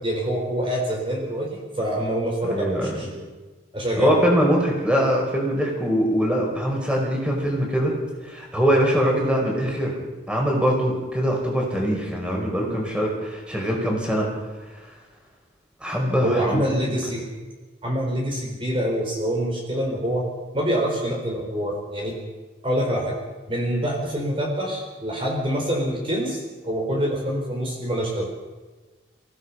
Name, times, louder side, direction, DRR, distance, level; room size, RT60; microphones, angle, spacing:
voice 1, 0.0-3.3 3.7-4.2 16.2-17.2 17.8-20.2 20.5-22.2 22.6-23.1 23.5-28.3, equal, 30° right, -1 dB, 4.0 m, -26 dB
voice 2, 2.4-3.0 4.0-7.9 8.2-9.9 10.3-14.3 15.8-17.0, equal, 5° right, -1 dB, 4.9 m, -22 dB
27.5 x 16.5 x 5.7 m, 1.3 s
head